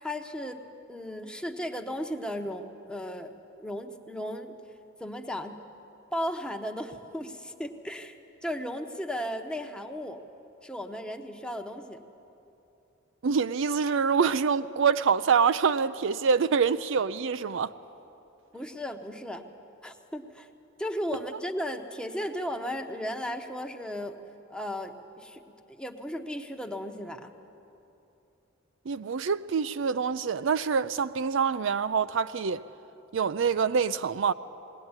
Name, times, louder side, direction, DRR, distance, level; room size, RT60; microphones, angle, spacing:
voice 1, 0.0-0.6 0.9-3.3 3.6-4.6 5.0-5.6 6.1-8.2 8.4-10.2 10.6-12.0 18.5-19.4 19.8-20.5 20.8-24.2 24.5-25.4 25.7-27.3, equal, 5° left, 1.0 m, -35 dB
voice 2, 13.2-17.7 28.9-32.6 33.1-34.3, right 6 dB, 65° right, 0.4 m, -25 dB
21.0 x 17.5 x 9.7 m
head